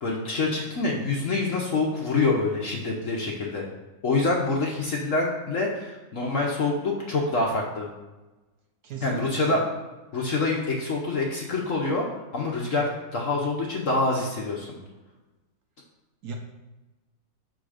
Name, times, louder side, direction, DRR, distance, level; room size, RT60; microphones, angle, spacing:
voice 1, 0.0-3.6 4.0-7.9 9.0-9.6 10.1-12.1 12.3-14.8, left 3 dB, 50° left, -2 dB, 1.0 m, -26 dB
voice 2, 8.8-9.6 16.2-16.4, right 5 dB, 65° right, 2 dB, 1.1 m, -36 dB
6.5 x 3.8 x 4.9 m, 1.1 s
omnidirectional pair, 2.1 m